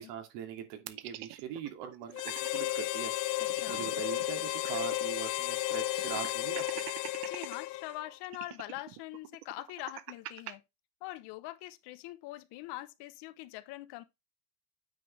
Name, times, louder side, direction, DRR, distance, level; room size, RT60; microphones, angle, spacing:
voice 1, 0.0-3.1 3.7-6.8, right 9 dB, 70° right, 2.5 m, -42 dB
sound 1, 0.9-2.6 3.0-3.1 3.3-5.1 5.4-5.5 6.0-7.6 8.2-10.5, right 15 dB, 50° right, 0.9 m, -45 dB
Harmonica, 2.1-8.1, left 16 dB, 85° left, 0.7 m, -34 dB
voice 2, 3.4-3.8 7.2-10.6 11.0-14.0, left 17 dB, 55° left, 0.9 m, -43 dB
9.1 x 5.4 x 3.2 m
supercardioid pair, 130°, 49 cm